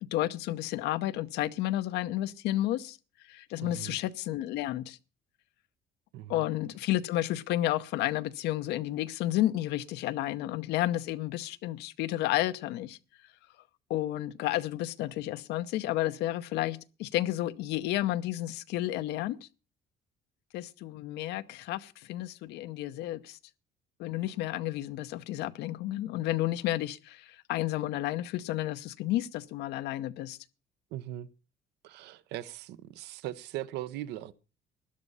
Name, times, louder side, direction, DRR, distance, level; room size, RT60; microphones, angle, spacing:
voice 1, 0.0-3.0 3.3-5.0 6.3-13.0 13.9-19.5 20.5-23.4 24.0-30.4, left 14 dB, 85° left, 0.8 m, -31 dB
voice 2, 3.6-4.0 6.1-6.4 30.9-31.3 31.8-34.3, right 13 dB, 85° right, 0.8 m, -39 dB
13.0 x 11.0 x 5.5 m
cardioid pair, 110°, 17 cm